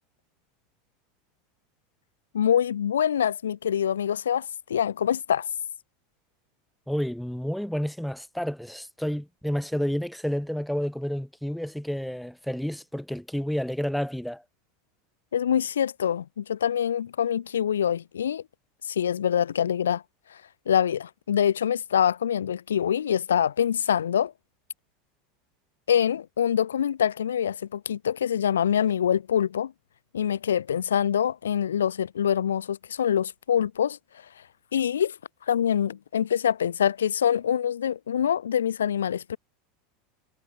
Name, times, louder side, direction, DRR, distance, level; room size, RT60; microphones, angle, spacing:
voice 1, 2.3-5.5 15.3-18.4 18.9-20.0 20.7-24.3 25.9-29.7 30.1-34.0 34.7-35.2 35.5-39.4, left 9 dB, 80° left, 0.8 m, -25 dB
voice 2, 6.9-14.4, equal, ahead, 0.8 m, -30 dB
hypercardioid pair, 85°, 0 cm